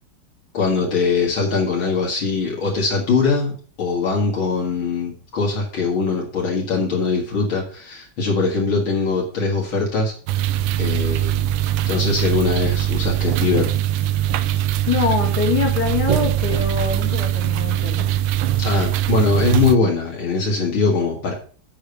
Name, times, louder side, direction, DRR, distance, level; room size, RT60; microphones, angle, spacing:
voice 1, 0.5-10.1 10.8-11.5 11.9-13.7 14.4-14.7 18.6-21.3, left 4 dB, 70° left, -2 dB, 2.8 m, -21 dB
sound 1, 10.3-19.8, right 13 dB, 75° right, 1.3 m, -21 dB
voice 2, 14.9-18.2, left 6 dB, 50° left, -1 dB, 2.8 m, -24 dB
8.0 x 5.1 x 6.8 m, 0.42 s
omnidirectional pair, 2.3 m